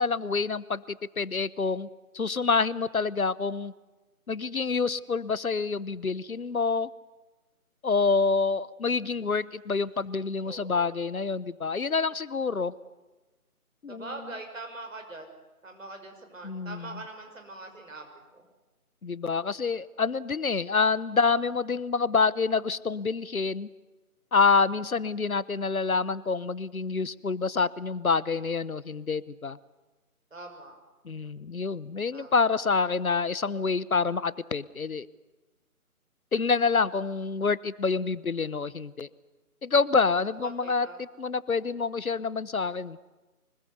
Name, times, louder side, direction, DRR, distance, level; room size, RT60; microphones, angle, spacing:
voice 1, 0.0-1.9 2.1-3.7 4.3-6.9 7.8-12.7 13.8-14.1 16.4-17.0 19.0-23.7 24.3-29.6 31.0-35.1 36.3-39.1 39.6-40.9 41.2-43.0, left 4 dB, 65° left, 19 dB, 1.0 m, -27 dB
voice 2, 10.5-10.9 13.9-15.3 15.6-18.1 18.3-18.4 30.3-30.8 32.1-32.3 40.4-41.0, right 2 dB, 60° right, 5 dB, 5.7 m, -42 dB
25.0 x 20.5 x 8.1 m, 1.1 s
figure-of-eight pair, 155°, 45 cm